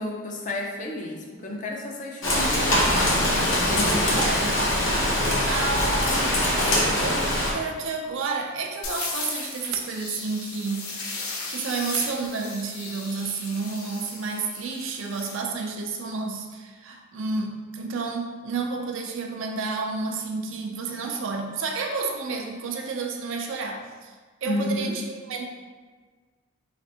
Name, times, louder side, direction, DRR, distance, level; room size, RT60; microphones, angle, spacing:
voice 1, 0.0-3.1 3.5-4.2 24.4-25.0, left 1 dB, 35° left, 0 dB, 0.4 m, -31 dB
Rain, 2.2-7.5, left 1 dB, 60° left, 0.8 m, -22 dB
voice 2, 4.1-4.5 5.5-6.3 7.0-7.3 7.5-11.1 11.5-24.2 24.4-25.4, right 4 dB, 60° right, 2 dB, 0.4 m, -30 dB
sound 1, 8.8-15.4, left 3 dB, 90° left, 0.7 m, -36 dB
3.3 x 3.2 x 2.8 m, 1.4 s
head